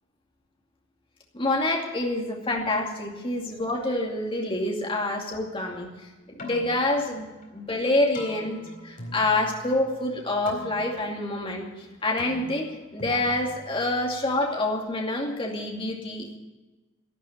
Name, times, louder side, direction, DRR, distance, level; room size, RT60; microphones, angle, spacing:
voice 1, 1.3-5.9 6.4-7.3 7.5-11.7 12.0-12.7 12.9-16.4, left 2 dB, 25° left, 0 dB, 2.5 m, -27 dB
Keyboard (musical), 6.2-14.4, left 2 dB, 45° left, 4.1 m, -43 dB
12.5 x 12.5 x 9.0 m, 1.2 s
head